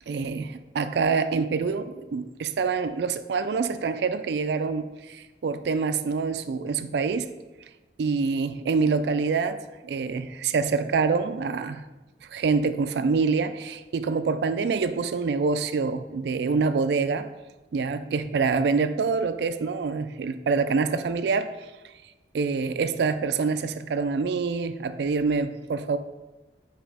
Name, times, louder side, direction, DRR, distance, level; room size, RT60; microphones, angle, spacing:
voice 1, 0.1-7.3 8.0-11.8 12.3-17.3 17.7-21.7 22.3-26.0, right 4 dB, 70° right, 11 dB, 0.3 m, -26 dB
7.8 x 3.0 x 4.9 m, 1.1 s
head